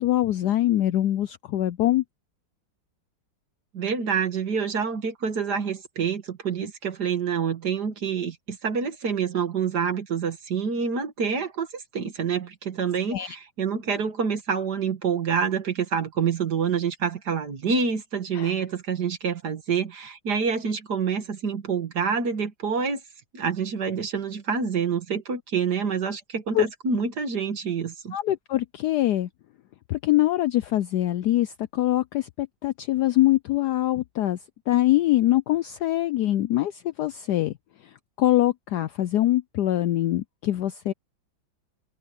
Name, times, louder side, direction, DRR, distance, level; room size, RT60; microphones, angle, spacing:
voice 1, 0.0-2.0 13.1-13.4 18.3-18.5 26.5-26.6 28.1-29.3 29.9-34.4 34.7-37.5 38.2-40.9, left 14 dB, 75° left, 0.9 m, -23 dB
voice 2, 3.7-23.0 23.3-28.2, right 6 dB, 55° right, 2.2 m, -27 dB
omnidirectional pair, 2.2 m